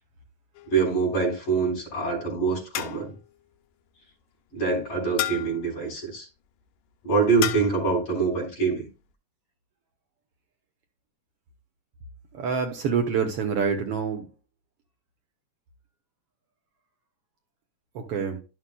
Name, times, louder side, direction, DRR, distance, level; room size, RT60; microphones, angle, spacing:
sound 1, 0.5-1.1 2.7-3.3 5.2-5.7 7.4-7.9, left 13 dB, 85° left, 2.1 m, -32 dB
voice 1, 0.7-3.1 4.5-6.3 7.0-8.9, right 4 dB, 45° left, -2 dB, 5.0 m, -25 dB
voice 2, 12.3-14.3 17.9-18.4, right 6 dB, 65° right, 4 dB, 1.6 m, -26 dB
11.5 x 7.0 x 2.2 m, 0.32 s
omnidirectional pair, 3.5 m